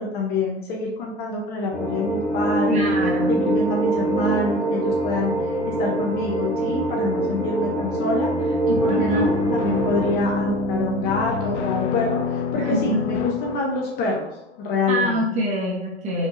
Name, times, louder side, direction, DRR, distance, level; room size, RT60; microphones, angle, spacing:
voice 1, 0.0-2.9 3.3-5.3 5.7-14.3 14.6-15.2, left 2 dB, 30° left, -1 dB, 0.6 m, -26 dB
sound 1, 1.7-10.1, right 1 dB, 5° left, 1.1 m, -24 dB
voice 2, 2.7-3.3 8.8-9.3 12.5-13.2 14.9-16.3, equal, 20° right, -2 dB, 0.9 m, -25 dB
sound 2, 8.7-14.4, left 4 dB, 70° left, 0.8 m, -27 dB
4.9 x 2.6 x 2.7 m, 0.85 s
hypercardioid pair, 130°, 35 cm